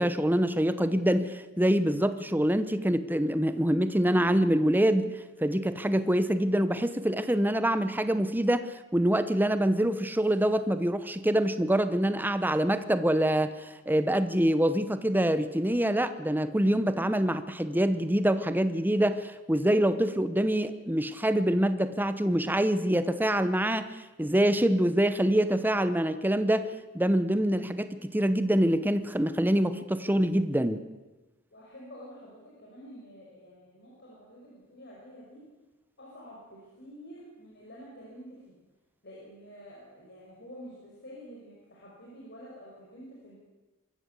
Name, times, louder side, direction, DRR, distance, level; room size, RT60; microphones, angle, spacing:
voice 1, 0.0-5.1 5.4-23.9 24.2-26.7 26.9-30.8, right 1 dB, 10° right, 12 dB, 0.9 m, -25 dB
voice 2, 31.5-35.4 36.0-38.6 39.0-43.4, equal, 50° left, -4 dB, 5.5 m, -48 dB
24.0 x 14.0 x 8.2 m, 1.1 s
head